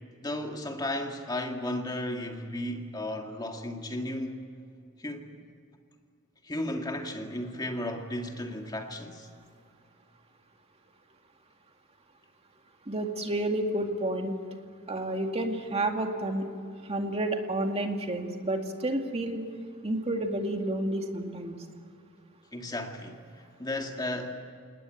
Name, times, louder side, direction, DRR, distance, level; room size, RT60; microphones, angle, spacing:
voice 1, 0.2-4.5 5.0-5.3 6.4-9.3 22.5-24.4, left 1 dB, 20° left, 1.9 m, -34 dB
voice 2, 12.9-14.4 14.9-16.5 16.8-19.4 19.8-21.6, right 1 dB, 30° right, 2.2 m, -30 dB
28.5 x 19.0 x 9.2 m
head